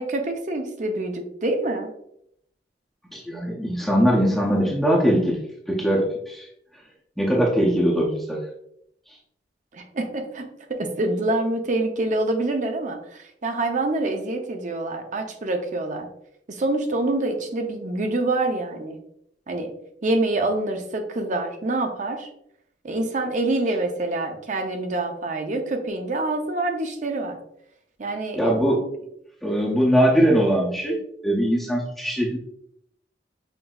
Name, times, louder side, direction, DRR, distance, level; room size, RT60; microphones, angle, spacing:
voice 1, 0.0-1.9 9.7-16.1 16.5-19.0 19.5-19.7 20.0-22.3 22.8-27.4 28.0-28.8, right 2 dB, 45° right, 4 dB, 0.6 m, -26 dB
voice 2, 3.1-5.4 5.7-6.5 7.2-8.4 28.4-28.8 29.4-32.4, equal, ahead, -5 dB, 0.6 m, -21 dB
5.8 x 2.6 x 2.3 m, 0.73 s
head